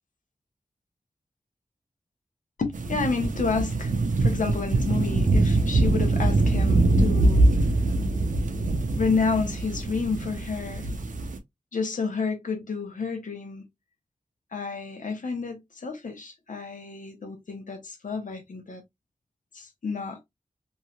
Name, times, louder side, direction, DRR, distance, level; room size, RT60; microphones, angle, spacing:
voice 1, 2.6-7.7 9.0-10.9 11.7-13.6 14.5-18.8 19.5-20.2, left 4 dB, 80° left, 0.9 m, -30 dB
sound 1, 2.7-11.4, right 2 dB, 80° right, 0.6 m, -23 dB
3.1 x 2.7 x 2.3 m
wide cardioid pair, 85°, 13 cm